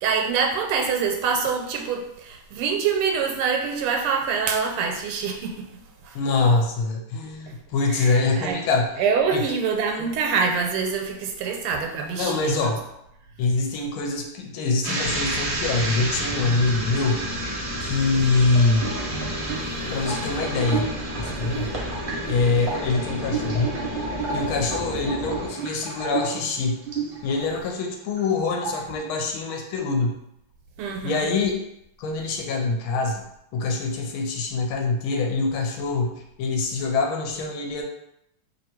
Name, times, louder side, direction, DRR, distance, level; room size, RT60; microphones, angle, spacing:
voice 1, 0.0-5.7 6.0-6.2 7.9-8.6 9.0-12.7 30.8-31.3, right 5 dB, 85° right, 2 dB, 1.5 m, -25 dB
voice 2, 6.1-8.9 9.3-9.4 12.2-12.8 13.4-17.3 17.8-19.0 19.9-20.9 21.2-21.8 22.3-23.8 24.3-26.8 27.2-30.2 31.0-31.6 32.0-33.2 33.5-37.8, left 3 dB, 75° left, 2 dB, 1.3 m, -24 dB
sound 1, 14.8-27.6 28.0-28.3 28.6-29.0, right 3 dB, 50° right, 0.8 m, -31 dB
sound 2, 15.0-25.5, left 1 dB, 5° left, 0.6 m, -34 dB
3.2 x 2.8 x 4.3 m, 0.80 s
omnidirectional pair, 2.4 m